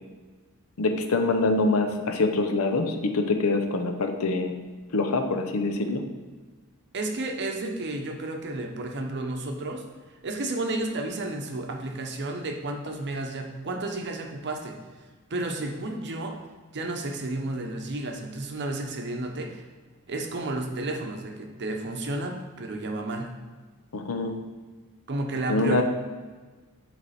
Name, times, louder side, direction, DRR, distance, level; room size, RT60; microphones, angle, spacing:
voice 1, 0.8-4.5 4.9-6.0 23.9-24.3 25.5-25.8, left 3 dB, 70° left, 5 dB, 0.7 m, -25 dB
voice 2, 6.9-9.8 10.2-14.8 15.3-16.4 16.7-19.6 20.1-23.3 25.1-25.8, right 2 dB, 50° right, 3 dB, 0.8 m, -32 dB
8.0 x 3.4 x 4.2 m, 1.4 s
head